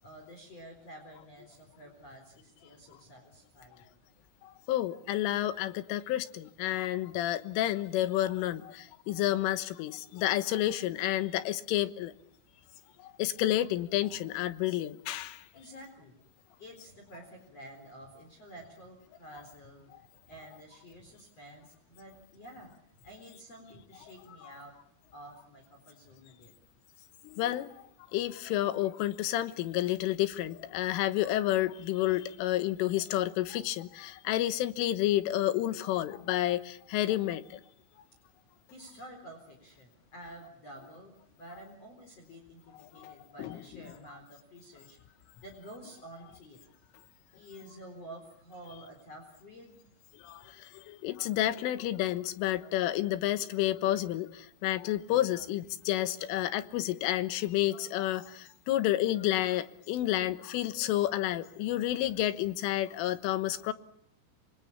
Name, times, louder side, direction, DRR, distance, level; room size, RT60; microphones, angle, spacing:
voice 1, 0.0-4.0 15.5-16.1 16.6-19.9 20.3-22.7 22.9-24.7 25.1-26.5 38.7-45.0 45.4-46.6 47.3-49.8, right 1 dB, 30° left, 4.7 m, -50 dB
voice 2, 4.7-12.1 13.2-15.4 27.3-27.7 28.1-37.4 43.0-43.1 43.4-43.6 50.2-50.4 50.9-63.7, left 14 dB, 75° left, 3.6 m, -30 dB
26.0 x 23.5 x 8.7 m
omnidirectional pair, 6.0 m